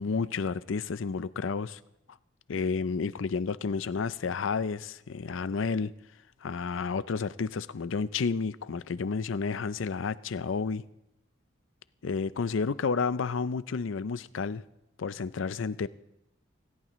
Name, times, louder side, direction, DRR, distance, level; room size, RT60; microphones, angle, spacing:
voice 1, 0.0-1.8 2.5-5.9 6.4-10.8 12.0-14.6 15.0-15.9, left 5 dB, 70° left, 0.5 m, -31 dB
25.5 x 15.0 x 3.1 m
head